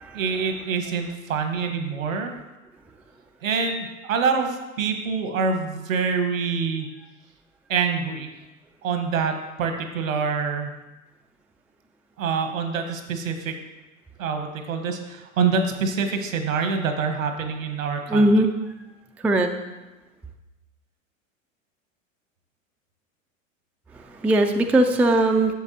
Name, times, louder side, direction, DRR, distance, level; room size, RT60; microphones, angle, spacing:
voice 1, 0.1-2.3 3.4-6.9 7.7-8.3 8.8-10.7 12.2-13.5 14.2-18.3, right 5 dB, 80° right, 6 dB, 1.3 m, -26 dB
voice 2, 18.1-18.5 19.2-19.5 24.0-25.5, right 1 dB, 5° right, 4 dB, 0.3 m, -19 dB
11.0 x 7.1 x 2.8 m, 1.1 s
hypercardioid pair, 85°, 40 cm